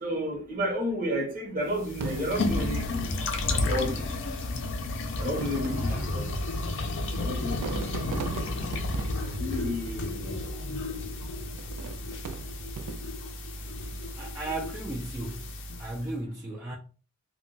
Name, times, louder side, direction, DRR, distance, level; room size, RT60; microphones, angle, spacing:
voice 1, 0.0-3.1 3.6-4.1 5.2-6.4 7.2-7.7 9.2-10.3, equal, 40° right, 0.8 m, -32 dB
sound 1, 1.7-16.0, left 2 dB, 55° left, 0.5 m, -32 dB
Fireworks, 2.0-3.6 4.5-4.6 5.2-10.5 11.6-13.4 13.9-14.4, right 6 dB, 90° right, 0.3 m, -40 dB
voice 2, 14.2-15.4 15.8-16.8, right 2 dB, 10° right, 0.3 m, -35 dB
2.2 x 2.2 x 3.8 m
head